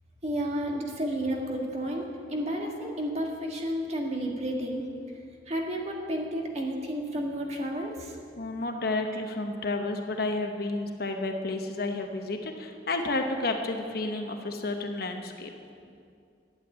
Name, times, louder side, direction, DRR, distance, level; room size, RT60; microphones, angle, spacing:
voice 1, 0.2-4.9 5.5-8.2, equal, 35° right, 0 dB, 1.7 m, -31 dB
voice 2, 8.4-15.5, left 2 dB, 55° left, 4 dB, 1.0 m, -31 dB
12.0 x 8.0 x 8.9 m, 2.4 s
head